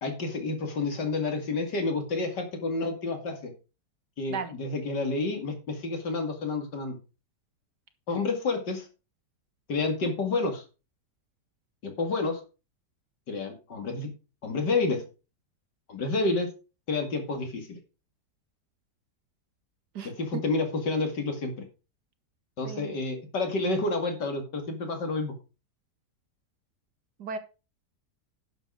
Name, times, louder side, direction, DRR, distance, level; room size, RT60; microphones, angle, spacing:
voice 1, 0.0-3.5 4.2-7.0 8.1-8.9 9.7-10.6 11.8-12.4 13.3-14.1 14.4-15.0 15.9-16.5 16.9-17.8 20.0-21.7 22.6-25.3, left 3 dB, 85° left, 5 dB, 3.0 m, -29 dB
voice 2, 22.6-23.0 27.2-27.4, right 5 dB, 75° right, 9 dB, 1.9 m, -35 dB
10.5 x 7.1 x 4.9 m, 0.32 s
omnidirectional pair, 1.8 m